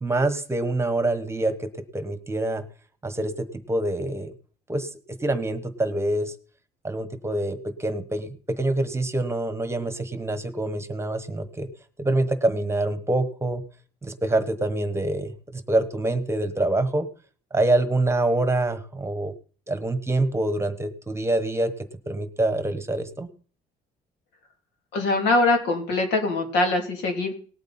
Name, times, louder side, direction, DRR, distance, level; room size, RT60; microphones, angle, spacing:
voice 1, 0.0-1.7 1.9-2.6 3.0-3.3 3.7-4.3 4.7-4.9 5.2-6.3 6.8-8.3 8.6-11.7 12.0-13.6 14.0-17.1 17.5-19.3 19.7-21.7 22.1-23.3, right 2 dB, 15° right, 11 dB, 1.2 m, -25 dB
voice 2, 24.9-27.3, left 2 dB, 85° left, 4 dB, 3.1 m, -23 dB
18.5 x 8.2 x 4.3 m, 0.40 s
cardioid pair, 110°, 17 cm